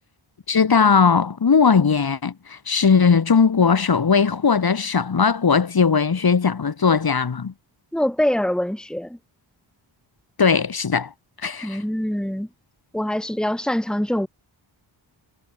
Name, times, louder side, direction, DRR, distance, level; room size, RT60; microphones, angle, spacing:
voice 1, 0.5-7.5 10.4-11.1 11.4-11.8, left 5 dB, 50° left, 4.2 m, -18 dB
voice 2, 7.9-9.2 11.6-12.5 12.9-14.3, left 1 dB, ahead, 2.6 m, -24 dB
wide cardioid pair, 150°, 47 cm